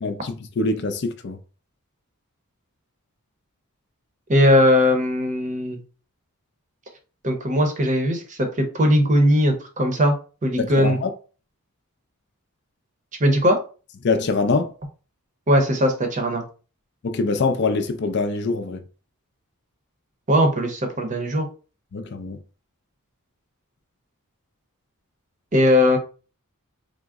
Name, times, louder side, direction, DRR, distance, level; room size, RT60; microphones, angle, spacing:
voice 1, 0.0-1.4 10.6-11.1 14.0-14.7 17.0-18.8 21.9-22.4, left 3 dB, 50° left, 0.4 m, -24 dB
voice 2, 4.3-5.8 7.2-10.2 10.4-11.0 13.2-13.6 15.5-16.4 20.3-21.5 25.5-26.0, equal, 35° right, 0.7 m, -19 dB
3.6 x 2.0 x 3.5 m
head